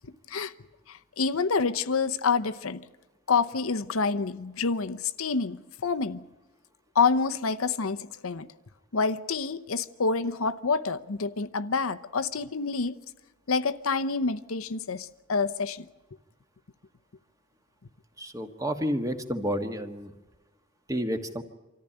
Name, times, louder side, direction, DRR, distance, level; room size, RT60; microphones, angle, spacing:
voice 1, 0.9-2.8 3.3-5.6 5.8-6.2 6.9-8.5 8.9-13.0 13.5-15.8, left 4 dB, 75° left, 0.8 m, -27 dB
voice 2, 18.2-20.1 20.9-21.4, equal, 15° right, 1.4 m, -30 dB
25.5 x 14.0 x 9.9 m
head